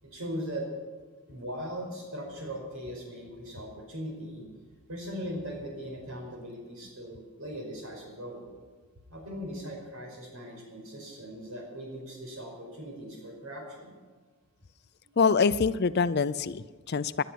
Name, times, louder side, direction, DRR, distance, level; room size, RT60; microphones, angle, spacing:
voice 1, 0.0-0.7 1.3-4.4 4.9-8.4 9.1-13.9, equal, 75° right, 1 dB, 5.1 m, -39 dB
voice 2, 15.2-17.2, left 5 dB, 45° left, 15 dB, 0.5 m, -25 dB
18.5 x 11.5 x 5.8 m, 1.4 s
head